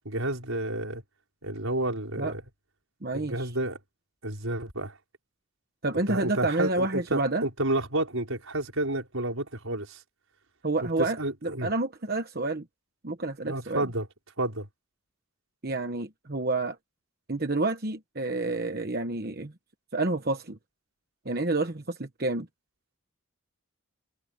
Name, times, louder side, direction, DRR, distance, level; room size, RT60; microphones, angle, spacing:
voice 1, 0.1-1.0 1.4-2.4 3.1-3.8 4.2-5.0 6.1-10.0 10.8-10.9 11.2-11.7 13.5-14.1 14.4-14.7, right 1 dB, 75° right, 5.5 m, -30 dB
voice 2, 3.0-3.5 5.8-7.4 10.6-12.6 13.0-13.9 15.6-16.8 17.3-19.5 19.9-20.6 21.2-22.5, right 2 dB, 45° right, 1.1 m, -29 dB
head